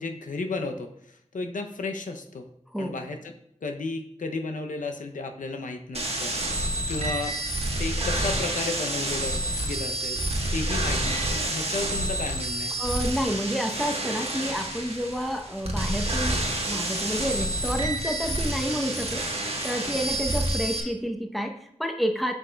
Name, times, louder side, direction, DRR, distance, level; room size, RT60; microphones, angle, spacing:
voice 1, 0.0-2.5 2.8-3.3 3.6-6.3 6.9-7.4 7.8-10.2 10.5-12.8, left 3 dB, 90° left, 5 dB, 0.5 m, -33 dB
sound 1, 5.9-20.8, right 1 dB, 50° right, 1.1 m, -29 dB
voice 2, 12.8-22.3, equal, ahead, 3 dB, 0.7 m, -30 dB
8.2 x 5.3 x 2.2 m, 0.74 s
wide cardioid pair, 50°, 13 cm